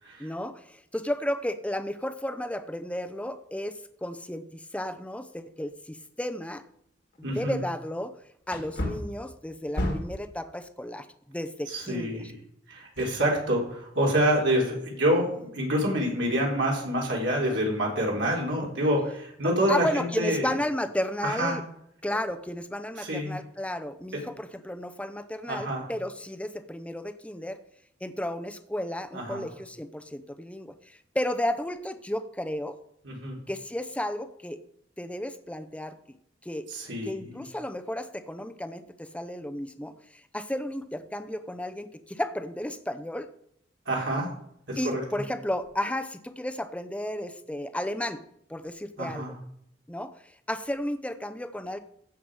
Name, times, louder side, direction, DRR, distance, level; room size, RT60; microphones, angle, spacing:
voice 1, 0.2-6.6 7.2-8.1 8.5-12.2 19.7-21.6 22.0-27.6 28.0-32.8 33.5-34.6 35.0-36.0 36.4-36.6 37.0-39.9 40.3-43.3 44.8-48.2 48.5-49.2 49.9-50.2 50.5-51.8, left 1 dB, 5° left, 10 dB, 0.7 m, -33 dB
Wood, 6.5-6.6 7.1-7.2 8.5-10.3 13.0-13.7 14.1-14.2, left 1 dB, 60° left, 1.8 m, -33 dB
voice 2, 7.2-7.6 11.7-12.4 12.7-20.5 21.2-21.6 23.0-23.4 24.1-24.2 25.5-25.8 29.1-29.5 33.0-33.4 36.7-37.3 43.9-44.3 44.7-45.0 49.0-49.3, equal, 70° right, -2 dB, 3.6 m, -27 dB
15.5 x 5.9 x 4.8 m, 0.73 s
head